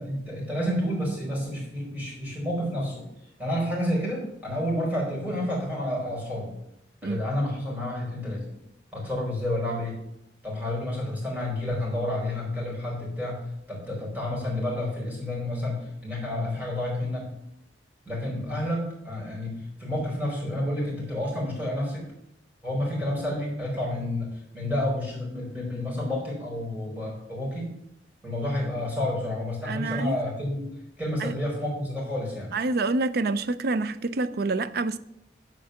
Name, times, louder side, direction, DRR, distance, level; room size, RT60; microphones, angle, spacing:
voice 1, 0.0-3.0 3.4-6.5 7.0-8.4 8.9-10.0 10.4-13.4 13.7-17.3 18.1-22.1 22.6-27.8 28.2-30.7 31.0-32.5, left 1 dB, 10° right, 4.1 m, -30 dB
voice 2, 29.7-30.2 31.2-31.3 32.5-35.0, right 3 dB, 60° right, 0.5 m, -27 dB
10.5 x 4.6 x 6.5 m
head